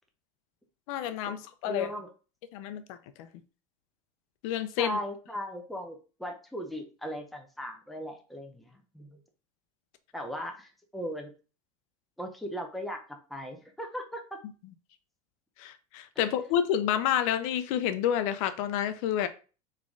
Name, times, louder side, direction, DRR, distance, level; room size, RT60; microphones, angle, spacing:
voice 1, 0.9-1.9 2.5-3.3 4.4-5.0 15.6-19.3, left 10 dB, 65° left, 10 dB, 0.6 m, -29 dB
voice 2, 1.6-2.1 4.8-9.2 10.1-11.3 12.2-13.0 13.3-14.4 16.2-16.3, equal, ahead, 2 dB, 0.7 m, -38 dB
3.7 x 3.2 x 3.7 m, 0.35 s
supercardioid pair, 135°, 18 cm